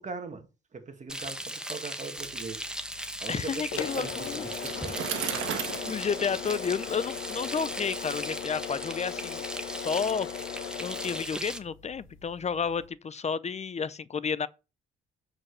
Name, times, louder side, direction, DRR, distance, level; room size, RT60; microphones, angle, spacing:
voice 1, 0.0-2.6 3.2-5.1, right 4 dB, 35° right, 2.0 m, -40 dB
Frying (food), 1.1-11.6, right 1 dB, 5° right, 1.1 m, -38 dB
sound 1, 2.2-12.9, left 9 dB, 80° left, 1.2 m, -39 dB
voice 2, 3.3-4.5 5.9-9.4 9.8-10.5 10.8-14.5, left 6 dB, 35° left, 0.6 m, -31 dB
Bicycle, 3.8-7.6, right 9 dB, 85° right, 1.6 m, -37 dB
7.6 x 5.1 x 6.2 m
cardioid pair, 90°, 20 cm